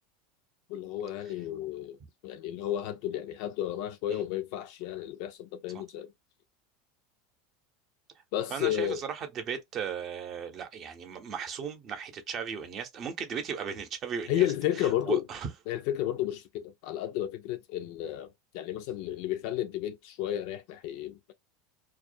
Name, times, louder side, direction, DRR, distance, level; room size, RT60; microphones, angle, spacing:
voice 1, 0.7-2.0 2.2-6.1 8.3-9.0 14.3-15.2 15.7-21.3, left 12 dB, 65° left, 0.4 m, -32 dB
voice 2, 8.5-14.5 15.1-15.5, right 7 dB, 45° right, 0.7 m, -36 dB
2.3 x 2.1 x 2.5 m
hypercardioid pair, 100°, 0 cm